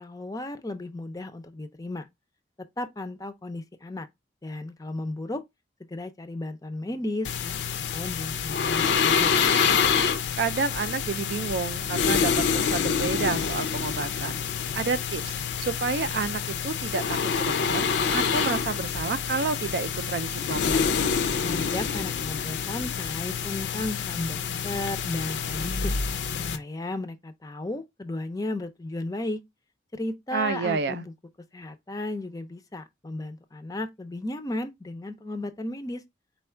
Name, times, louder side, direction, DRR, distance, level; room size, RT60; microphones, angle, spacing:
voice 1, 0.0-2.1 2.8-4.1 4.4-5.4 5.9-7.5 7.9-9.3 21.4-25.9 26.5-29.4 29.9-31.1 31.5-36.0, left 2 dB, 20° left, 0.4 m, -34 dB
sound 1, 7.2-26.6, left 6 dB, 85° left, 0.5 m, -27 dB
voice 2, 10.4-14.4 14.7-17.9 18.1-20.9 30.3-31.1, right 5 dB, 65° right, 0.4 m, -30 dB
4.2 x 2.3 x 4.3 m
head